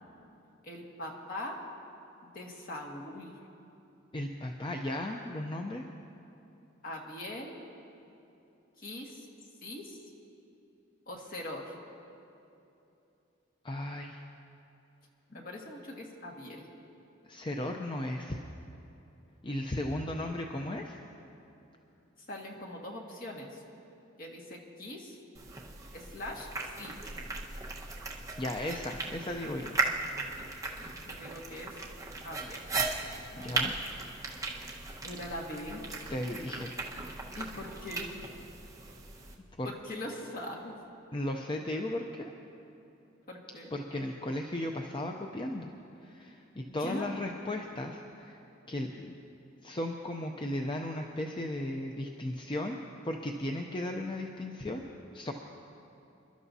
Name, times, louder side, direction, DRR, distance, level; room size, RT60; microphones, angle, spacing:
voice 1, 0.6-1.6 2.2-3.3 6.8-7.6 8.8-9.3 9.6-10.0 11.1-11.8 15.3-16.7 22.3-23.6 24.2-25.2 25.9-26.5 26.8-26.9 31.1-31.8 32.2-32.6 33.3-33.6 35.0-35.8 37.4-38.1 39.6-40.7 43.3-43.7 46.7-47.1, left 1 dB, 45° left, -1 dB, 1.8 m, -41 dB
voice 2, 4.1-5.8 13.6-14.2 17.2-18.4 19.4-21.0 28.4-29.8 33.4-33.7 36.1-36.7 39.6-39.7 41.1-42.3 43.7-45.7 46.0-48.4 48.7-49.2 49.6-54.8 55.1-55.3, left 1 dB, 25° left, 2 dB, 0.6 m, -35 dB
sound 1, 25.3-39.3, right 3 dB, 15° right, 1.2 m, -37 dB
27.0 x 12.5 x 2.8 m, 2.9 s
head